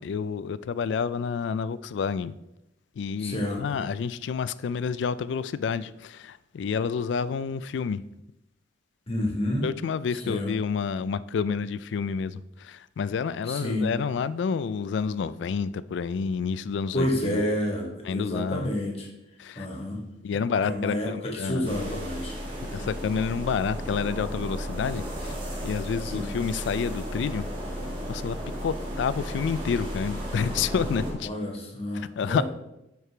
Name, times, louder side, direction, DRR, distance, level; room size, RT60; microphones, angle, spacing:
voice 1, 0.0-2.3 3.0-8.0 9.6-17.4 18.0-18.7 19.4-19.7 20.2-22.0 22.7-27.5 28.1-31.3 31.9-32.4, left 6 dB, 75° left, 17 dB, 0.3 m, -29 dB
voice 2, 3.2-3.8 9.1-9.7 10.1-10.6 13.5-13.9 16.9-19.1 19.6-20.0 20.6-22.4 22.8-22.9 26.0-26.3 31.2-32.4, left 1 dB, 30° left, 1 dB, 1.5 m, -29 dB
sound 1, 21.6-31.1, equal, 30° right, 1.7 m, -34 dB
9.7 x 4.7 x 3.3 m, 0.89 s
head